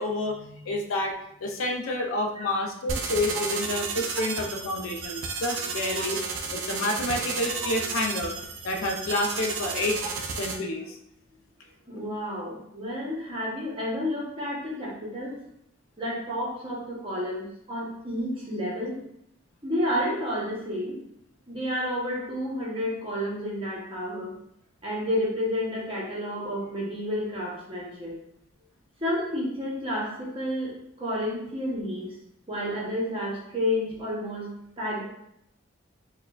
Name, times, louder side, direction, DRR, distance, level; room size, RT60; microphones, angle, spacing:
voice 1, 0.0-6.2 6.5-8.3 8.6-10.0 10.4-11.0, left 1 dB, 80° left, 2 dB, 0.5 m, -29 dB
sound 1, 2.9-10.6, right 4 dB, 65° right, 0.4 m, -32 dB
voice 2, 11.9-15.3 16.0-18.9 19.6-21.0 21.5-24.3 24.8-28.1 29.0-32.2 32.5-34.5 34.8-35.0, left 1 dB, 25° right, -5 dB, 0.8 m, -30 dB
4.3 x 2.2 x 2.3 m, 0.76 s
head